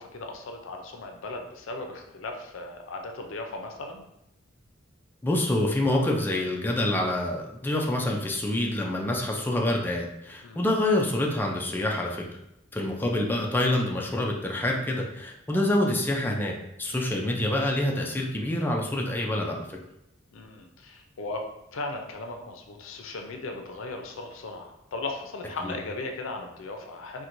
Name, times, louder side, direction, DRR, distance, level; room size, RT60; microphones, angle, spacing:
voice 1, 0.0-4.0 10.4-10.6 15.5-15.6 20.3-21.5 21.7-27.3, left 2 dB, 85° left, 3 dB, 0.5 m, -37 dB
voice 2, 5.2-12.2 12.7-19.8 25.6-25.7, left 1 dB, 10° left, -1 dB, 0.4 m, -27 dB
4.3 x 2.2 x 2.6 m, 0.83 s
head